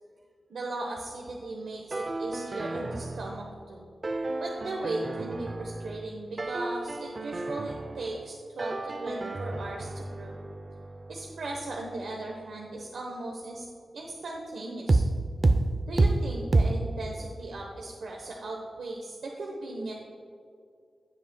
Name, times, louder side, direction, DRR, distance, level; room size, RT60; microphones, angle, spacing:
voice 1, 0.5-3.9 4.4-10.4 11.1-13.7 13.9-15.0 15.9-19.9, right 2 dB, 85° right, 0 dB, 1.0 m, -37 dB
sound 1, 1.9-3.6 4.0-6.1 6.4-8.3 8.6-12.3 14.9-15.1 15.4-15.6 16.0-16.2 16.5-16.7, right 2 dB, 35° right, 0.5 m, -30 dB
16.0 x 7.7 x 2.2 m, 2.4 s
wide cardioid pair, 145°, 0 cm